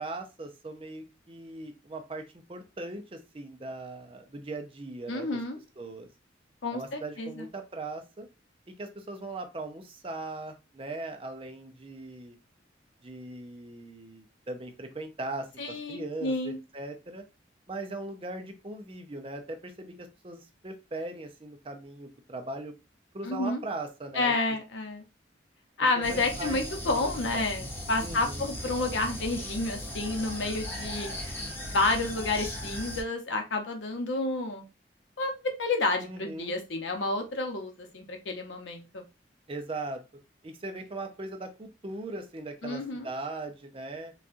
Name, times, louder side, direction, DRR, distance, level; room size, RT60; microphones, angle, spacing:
voice 1, 0.0-5.3 5.8-6.1 6.7-8.3 8.7-12.4 13.0-17.2 17.7-22.7 23.1-24.4 25.8-26.6 27.3-27.5 28.0-28.5 36.0-36.5 39.5-40.0 40.4-44.1, right 2 dB, 30° right, 6 dB, 0.5 m, -39 dB
voice 2, 5.1-5.6 6.6-7.5 15.6-16.6 23.2-23.6 24.1-25.0 25.8-31.1 31.6-34.6 35.2-39.0 42.6-43.1, left 2 dB, 85° left, 4 dB, 0.8 m, -30 dB
sound 1, 26.0-33.0, left 1 dB, 10° left, 0.7 m, -38 dB
4.1 x 2.3 x 2.5 m, 0.28 s
head